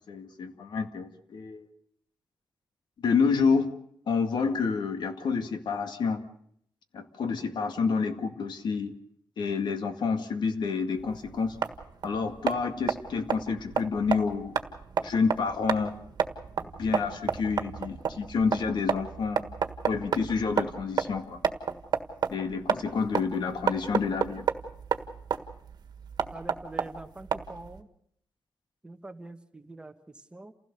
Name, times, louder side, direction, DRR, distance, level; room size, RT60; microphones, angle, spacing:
voice 1, 0.1-1.7 3.0-6.2 6.9-8.9 9.4-11.6 12.0-14.6 15.0-15.9 16.8-19.4 19.8-21.4 22.3-24.5, left 5 dB, 80° left, 7 dB, 2.1 m, -29 dB
sound 1, 11.0-27.8, right 7 dB, 65° right, 1.6 m, -31 dB
voice 2, 26.3-27.9 28.8-30.5, right 2 dB, 15° right, 8 dB, 1.2 m, -44 dB
29.0 x 16.5 x 6.8 m, 0.68 s
wide cardioid pair, 170°, 8 cm